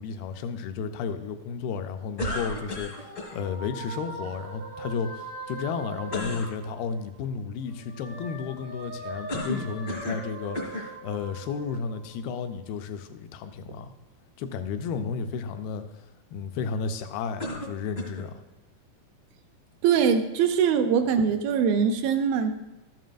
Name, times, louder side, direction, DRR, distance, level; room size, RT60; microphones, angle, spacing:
voice 1, 0.0-13.9 14.4-15.8 16.3-18.4, left 6 dB, 85° left, 8 dB, 2.5 m, -33 dB
sound 1, 2.2-3.4 6.1-6.5 9.3-10.3 10.5-10.9 11.7-11.8 17.4-18.3, left 1 dB, 65° left, 0.9 m, -33 dB
sound 2, 2.5-7.3 7.6-12.4, right 2 dB, 50° right, 0.8 m, -41 dB
voice 2, 19.8-22.5, right 7 dB, 80° right, 7 dB, 2.4 m, -22 dB
13.0 x 9.2 x 2.5 m, 1.0 s
omnidirectional pair, 4.3 m